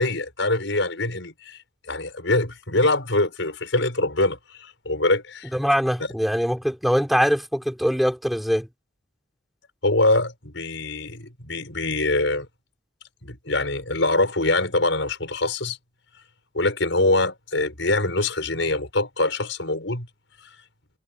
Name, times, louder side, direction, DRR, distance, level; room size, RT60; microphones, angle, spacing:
voice 1, 0.0-1.6 1.9-5.5 9.8-12.5 13.2-15.8 16.5-20.1, left 2 dB, 80° left, 6.1 m, -24 dB
voice 2, 5.5-8.7, equal, ahead, 4.9 m, -22 dB
head